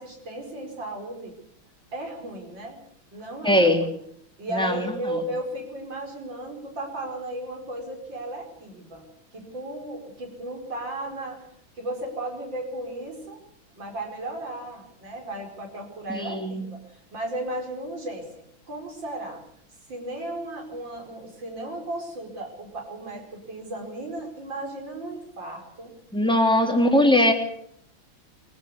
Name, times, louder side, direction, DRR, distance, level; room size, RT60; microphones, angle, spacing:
voice 1, 0.0-1.3 1.9-2.8 3.1-3.9 4.4-11.4 11.7-13.4 13.7-19.4 19.9-26.0 26.7-26.8, right 1 dB, 65° right, 2 dB, 5.8 m, -35 dB
voice 2, 3.4-3.8 4.5-4.9 16.1-16.6 26.1-27.3, left 1 dB, ahead, 3 dB, 3.1 m, -20 dB
24.0 x 15.5 x 8.3 m, 0.69 s
omnidirectional pair, 2.2 m